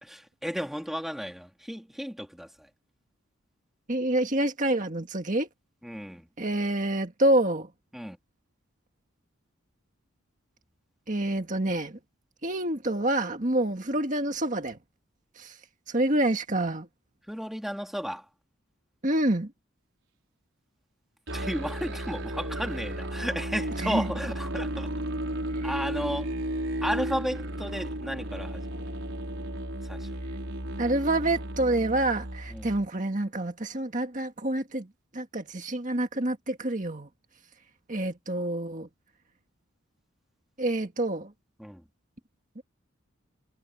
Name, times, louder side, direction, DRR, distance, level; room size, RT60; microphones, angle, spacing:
voice 1, 0.0-2.5 5.8-6.3 7.9-8.2 17.3-18.2 21.3-24.9 25.6-26.3 26.8-28.8 29.9-30.1 32.5-32.7 41.6-41.8, equal, ahead, 2.6 m, -33 dB
voice 2, 3.9-5.5 6.4-7.7 11.1-12.0 12.4-14.8 15.4-15.5 15.9-16.9 19.0-19.5 23.8-24.1 25.6-25.7 30.8-34.9 35.1-37.1 37.9-38.9 40.6-41.3 42.6-42.7, right 1 dB, 35° right, 1.8 m, -27 dB
Musical instrument, 21.3-32.9, right 1 dB, 65° right, 5.7 m, -34 dB
head